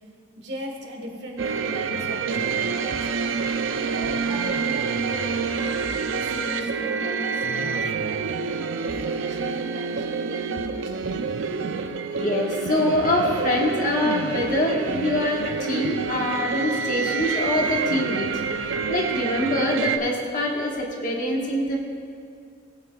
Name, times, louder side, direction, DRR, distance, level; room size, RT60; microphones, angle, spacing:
voice 1, 0.4-3.2 3.8-8.3 8.8-11.1, equal, 60° right, 1 dB, 1.5 m, -37 dB
sound 1, 1.4-20.0, right 5 dB, 80° right, 0.5 m, -27 dB
voice 2, 12.2-21.8, left 1 dB, 40° left, -1 dB, 1.4 m, -25 dB
19.5 x 8.8 x 2.4 m, 2.3 s
head